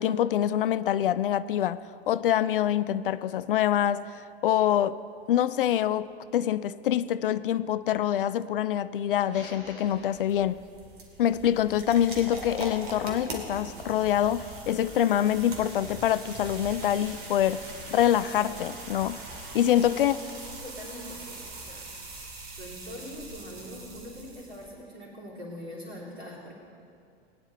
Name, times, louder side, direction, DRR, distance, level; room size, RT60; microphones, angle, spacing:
voice 1, 0.0-1.8 2.1-5.0 5.3-10.6 11.2-19.3 19.5-20.2, left 11 dB, 55° left, 0.4 m, -25 dB
sound 1, 8.8-10.8 12.3-15.3, equal, 85° left, 3.2 m, -52 dB
sound 2, 9.9-24.8, right 2 dB, 50° right, 2.3 m, -42 dB
voice 2, 19.9-21.9 22.6-26.5, equal, 75° right, 3.6 m, -43 dB
19.5 x 10.0 x 4.0 m
figure-of-eight pair, 95°, 32 cm